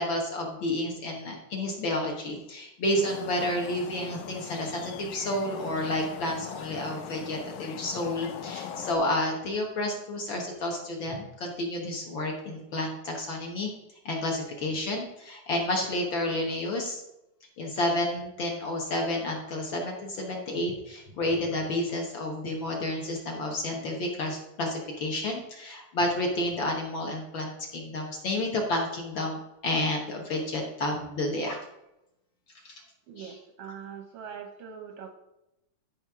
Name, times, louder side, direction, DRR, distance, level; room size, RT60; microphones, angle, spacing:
voice 1, 0.0-13.7 14.0-17.0 17.6-31.6 32.6-32.7 33.2-33.3, left 1 dB, 55° left, 1 dB, 1.4 m, -30 dB
sound 1, 2.9-8.9, left 9 dB, 75° left, 2.0 m, -40 dB
voice 2, 33.1-35.1, right 7 dB, 75° right, 5 dB, 1.4 m, -42 dB
13.0 x 5.5 x 3.6 m, 0.90 s
omnidirectional pair, 3.7 m